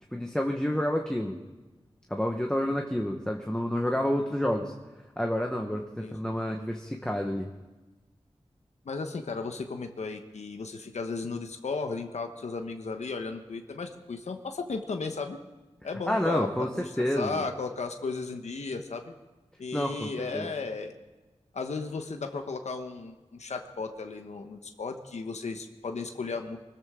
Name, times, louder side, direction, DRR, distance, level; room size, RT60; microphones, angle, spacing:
voice 1, 0.1-1.4 2.1-4.7 5.2-7.5 16.1-17.4 19.7-20.5, equal, 5° left, 2 dB, 1.2 m, -29 dB
voice 2, 8.8-15.4 15.8-19.1 19.6-20.9 21.5-26.6, left 4 dB, 90° left, 5 dB, 1.1 m, -35 dB
24.0 x 14.0 x 3.7 m, 1.2 s
wide cardioid pair, 85°, 11 cm